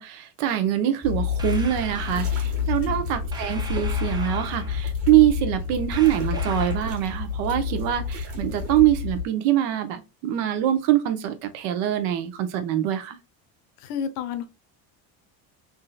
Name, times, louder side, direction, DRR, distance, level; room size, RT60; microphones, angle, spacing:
voice 1, 0.0-13.2, right 12 dB, 85° right, 0.9 m, -24 dB
sound 1, 1.0-9.3, left 6 dB, 35° right, 1.3 m, -29 dB
sound 2, 1.4-2.3 3.3-4.9 5.9-7.0, right 3 dB, 10° right, 0.4 m, -39 dB
voice 2, 13.8-14.4, left 7 dB, 85° left, 0.8 m, -31 dB
3.7 x 2.7 x 2.3 m
cardioid pair, 140°, 42 cm